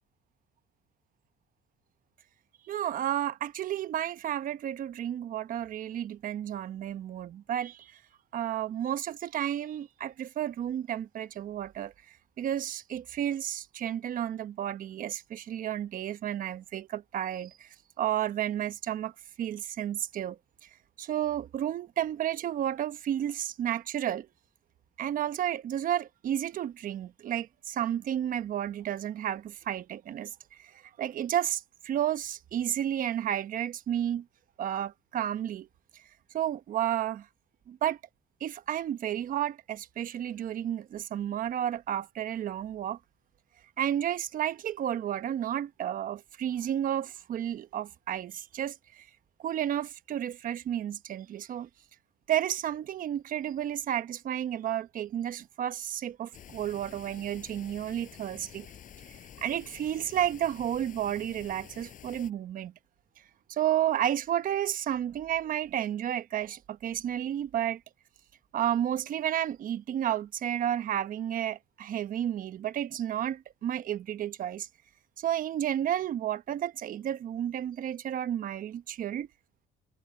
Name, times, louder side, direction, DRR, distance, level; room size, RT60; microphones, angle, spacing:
voice 1, 2.7-7.9 8.3-11.9 12.4-17.7 18.0-19.1 19.4-20.4 21.0-24.3 25.0-30.7 31.0-34.2 34.6-35.7 36.3-37.3 37.7-38.0 38.4-43.0 43.8-49.0 49.4-51.7 52.3-58.7 59.4-62.7 63.5-67.8 68.5-74.7 75.2-79.3, right 11 dB, 55° right, 1.0 m, -32 dB
sound 1, 56.3-62.3, left 9 dB, 50° left, 4.8 m, -50 dB
cardioid pair, 110°, 17 cm